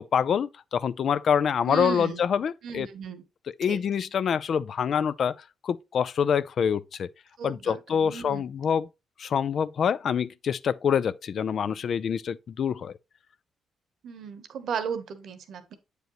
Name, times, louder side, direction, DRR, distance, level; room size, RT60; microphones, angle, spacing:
voice 1, 0.0-2.9 3.6-5.3 5.6-7.1 7.4-8.9 9.2-12.9, left 7 dB, 60° left, 0.4 m, -26 dB
voice 2, 1.7-2.3 2.6-3.2 3.7-3.8 7.4-8.4 14.0-15.7, right 7 dB, 70° right, 1.0 m, -35 dB
7.9 x 5.0 x 3.0 m
cardioid pair, 90°, 0 cm